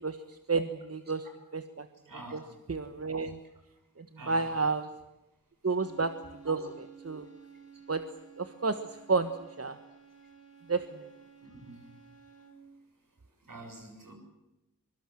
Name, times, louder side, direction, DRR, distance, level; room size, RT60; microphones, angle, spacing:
voice 1, 0.0-1.9 2.3-2.4 2.7-3.4 4.0-4.9 5.6-6.1 6.4-7.3 7.9-8.0 8.4-9.8 10.7-11.0, right 4 dB, 45° right, 9 dB, 1.4 m, -31 dB
voice 2, 2.1-2.5 4.2-4.6 11.6-11.9 13.5-14.1, right 2 dB, 70° right, 4 dB, 7.2 m, -46 dB
sound 1, 5.6-12.8, right 6 dB, 45° left, 5.5 m, -54 dB
24.5 x 23.5 x 7.7 m, 0.95 s
wide cardioid pair, 95°, 34 cm